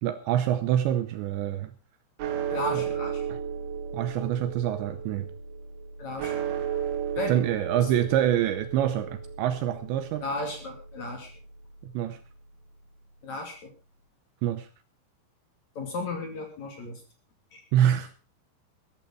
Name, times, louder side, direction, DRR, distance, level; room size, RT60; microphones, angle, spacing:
voice 1, 0.0-1.7 2.7-2.8 3.3-3.4 3.9-5.3 7.3-10.2 11.8-12.2 14.4-14.7 17.7-18.1, right 11 dB, 75° right, 11 dB, 2.8 m, -26 dB
sound 1, 2.2-12.6, right 8 dB, 60° right, 3.3 m, -35 dB
voice 2, 2.5-3.2 6.0-6.3 7.2-7.4 10.2-11.3 13.2-13.7 15.7-17.0 17.5-17.6, left 2 dB, 40° left, 3 dB, 3.5 m, -34 dB
14.0 x 14.0 x 4.8 m, 0.34 s
omnidirectional pair, 5.7 m